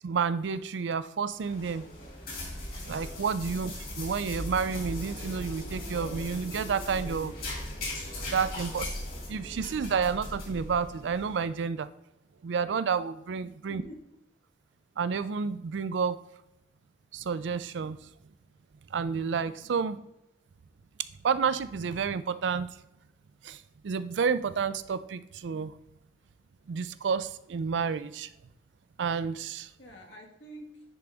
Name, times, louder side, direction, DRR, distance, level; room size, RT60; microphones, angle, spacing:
voice 1, 0.0-1.8 2.8-3.7 4.0-7.3 8.3-8.9 9.3-11.9 12.4-13.8 15.0-16.2 17.1-18.0 18.9-20.0 21.2-22.7 23.4-25.7 26.7-28.3 29.0-29.7, right 6 dB, 75° right, 14 dB, 0.4 m, -30 dB
sound 1, 1.3-11.3, left 1 dB, 50° left, 2.3 m, -38 dB
voice 2, 13.4-14.0 19.6-20.0 29.8-30.8, equal, 75° left, -1 dB, 1.8 m, -49 dB
10.0 x 3.9 x 3.5 m, 0.87 s
head